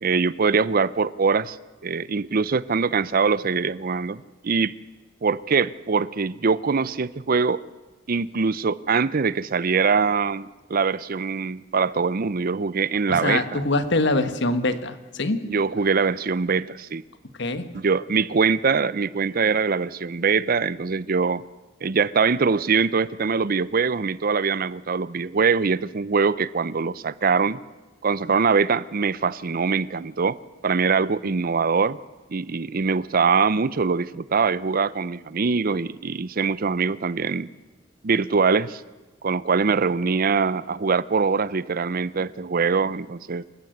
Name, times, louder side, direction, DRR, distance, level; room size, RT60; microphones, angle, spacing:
voice 1, 0.0-1.6 1.8-4.7 5.2-7.6 8.1-13.6 15.5-17.0 17.7-21.4 21.8-27.6 28.0-30.4 30.6-32.0 32.3-37.5 38.0-38.8 39.2-43.4, right 5 dB, 45° right, 19 dB, 0.6 m, -23 dB
voice 2, 13.1-15.4 17.4-17.7, left 2 dB, 60° left, 11 dB, 1.5 m, -24 dB
27.0 x 15.5 x 7.9 m, 1.3 s
head